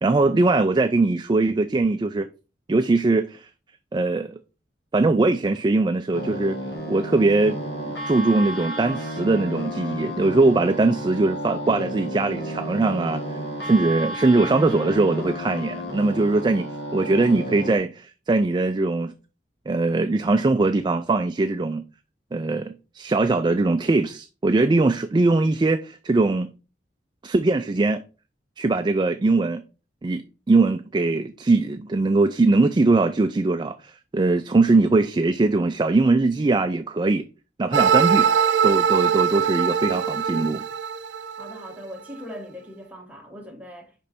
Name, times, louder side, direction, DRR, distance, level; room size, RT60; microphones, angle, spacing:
voice 1, 0.0-2.3 2.7-3.5 3.9-4.4 4.9-6.6 6.9-7.6 8.0-13.2 13.6-19.1 19.7-21.8 22.3-26.5 27.2-28.0 28.6-29.6 30.0-37.3 37.6-38.3 38.6-40.6, right 3 dB, 25° right, 0.4 m, -21 dB
sound 1, 6.1-17.8, equal, 70° left, 2.0 m, -32 dB
sound 2, 37.7-41.7, right 7 dB, 85° right, 0.5 m, -22 dB
voice 2, 41.4-43.9, equal, 10° right, 1.4 m, -40 dB
5.3 x 5.2 x 4.4 m
head